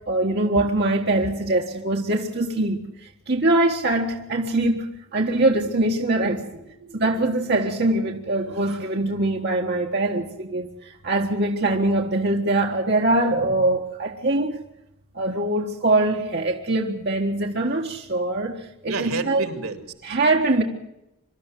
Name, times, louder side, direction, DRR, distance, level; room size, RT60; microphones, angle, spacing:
voice 1, 0.1-4.9 5.1-6.5 6.9-10.7 11.0-14.6 15.1-19.5 20.0-20.6, right 2 dB, 50° right, 1.6 m, -23 dB
voice 2, 6.2-7.5 18.8-20.2, right 4 dB, 75° right, 2.4 m, -33 dB
24.5 x 12.5 x 9.3 m
head